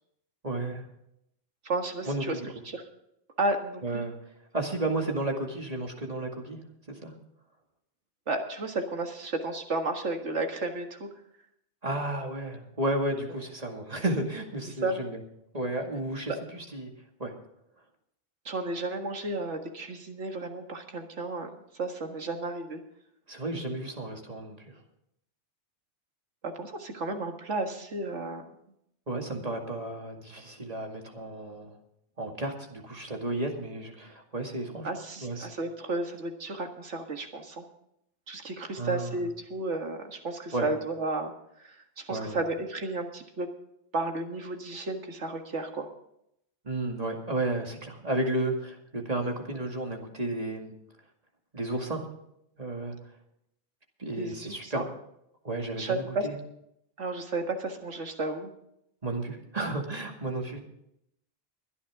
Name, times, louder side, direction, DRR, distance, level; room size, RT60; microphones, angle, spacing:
voice 1, 0.4-0.9 2.1-2.4 3.8-4.1 4.5-6.6 7.0-7.1 11.8-15.2 15.5-16.9 17.2-17.3 23.3-24.8 29.1-31.7 32.2-34.9 35.2-35.5 38.8-39.2 40.5-40.7 42.1-42.4 46.6-50.7 51.5-52.1 52.6-52.9 54.0-54.9 55.4-56.3 59.0-60.6, right 2 dB, 35° right, 2 dB, 2.2 m, -32 dB
voice 2, 1.6-2.4 2.7-2.8 3.4-4.0 8.3-11.1 14.8-15.0 18.5-22.8 26.4-28.4 34.8-37.7 38.3-41.3 41.6-43.5 43.9-45.9 54.2-54.8 55.8-56.3 57.0-58.5, right 2 dB, 90° right, 5 dB, 2.0 m, -33 dB
23.0 x 10.0 x 3.6 m, 0.77 s
omnidirectional pair, 1.2 m